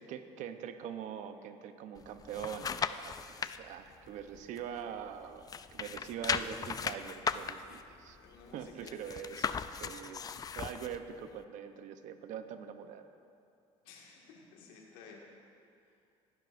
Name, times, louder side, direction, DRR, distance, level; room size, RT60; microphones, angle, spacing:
voice 1, 0.0-5.4 5.7-8.2 8.5-10.2 10.5-13.0, right 8 dB, 70° right, 8 dB, 0.8 m, -43 dB
sound 1, 2.0-3.6 4.0-5.2 5.4-11.0 11.4-11.5, left 6 dB, 30° left, 0.4 m, -37 dB
voice 2, 7.8-9.0 13.8-15.2, left 5 dB, 90° left, -1 dB, 2.0 m, -55 dB
18.5 x 11.0 x 2.6 m, 2.5 s
supercardioid pair, 90°, 13 cm